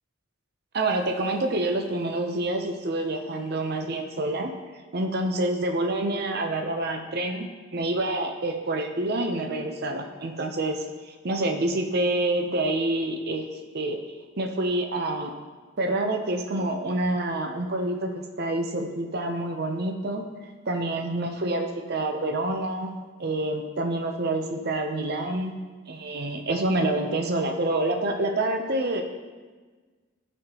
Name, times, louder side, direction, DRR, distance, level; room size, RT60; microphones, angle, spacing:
voice 1, 0.7-4.5 4.9-13.5 13.7-14.0 14.4-15.3 15.8-20.2 20.7-22.9 23.2-25.6 25.9-29.0, right 2 dB, 50° right, 4 dB, 0.6 m, -27 dB
11.5 x 4.3 x 2.9 m, 1.4 s
head